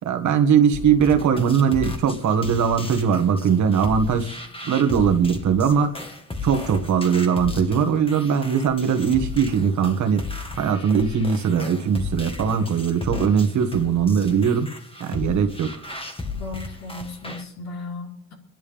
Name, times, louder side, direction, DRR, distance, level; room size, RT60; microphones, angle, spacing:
voice 1, 0.0-4.4 4.6-6.0 6.4-10.3 10.6-14.7 15.0-15.8, right 7 dB, 70° right, 1.7 m, -20 dB
sound 1, 0.7-17.4, left 3 dB, 20° left, 1.6 m, -35 dB
voice 2, 16.3-18.3, left 2 dB, 60° left, 3.8 m, -36 dB
28.0 x 11.0 x 3.6 m
cardioid pair, 90°, 30 cm